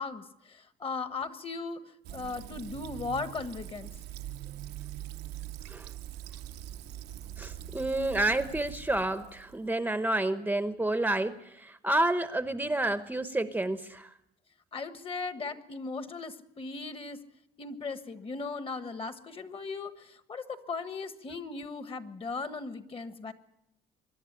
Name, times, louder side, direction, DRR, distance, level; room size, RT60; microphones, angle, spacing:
voice 1, 0.0-1.8 2.1-3.9 14.7-17.2 17.6-23.3, left 4 dB, 30° left, 11 dB, 1.4 m, -37 dB
Fill (with liquid), 2.0-9.7, right 12 dB, 75° right, 0.8 m, -43 dB
voice 2, 7.4-14.1, right 2 dB, 10° right, 11 dB, 0.8 m, -29 dB
24.5 x 11.0 x 10.0 m, 0.84 s
cardioid pair, 110°, 17 cm